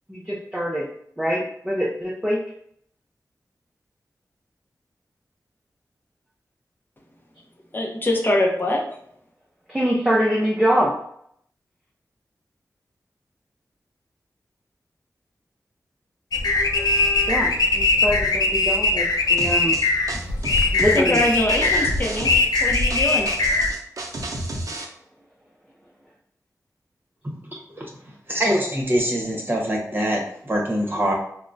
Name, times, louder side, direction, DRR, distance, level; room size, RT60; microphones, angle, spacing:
voice 1, 0.1-0.9 1.2-2.4 9.7-10.9 17.3-19.8 20.7-21.2, equal, 10° right, -4 dB, 0.5 m, -24 dB
voice 2, 7.7-8.8 20.4-20.6 20.9-22.3 22.6-23.3, left 1 dB, 30° left, 0 dB, 0.6 m, -23 dB
sound 1, 16.3-23.7, left 3 dB, 80° left, 0.4 m, -21 dB
sound 2, 19.4-24.9, right 1 dB, 60° right, 0.5 m, -32 dB
voice 3, 27.2-27.6 28.3-31.1, equal, 30° right, -2 dB, 0.9 m, -24 dB
3.6 x 2.1 x 2.5 m, 0.68 s
wide cardioid pair, 65°, 7 cm